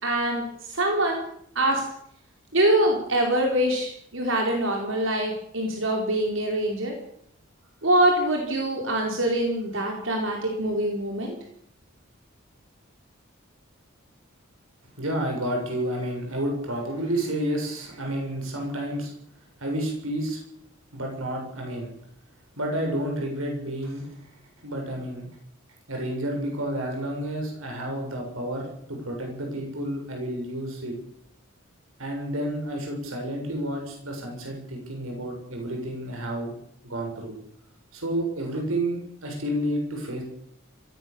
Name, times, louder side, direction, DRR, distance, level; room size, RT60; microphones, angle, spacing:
voice 1, 0.0-0.4 0.7-1.2 1.5-1.8 2.5-6.9 7.8-11.3, right 1 dB, 70° right, 1 dB, 4.5 m, -24 dB
voice 2, 15.0-19.1 19.6-20.4 20.9-21.9 22.6-24.2 24.6-25.3 25.9-30.9 32.0-36.5 36.8-37.4 37.9-40.2, right 1 dB, 85° right, 1 dB, 7.3 m, -30 dB
23.0 x 18.0 x 7.2 m, 0.70 s
head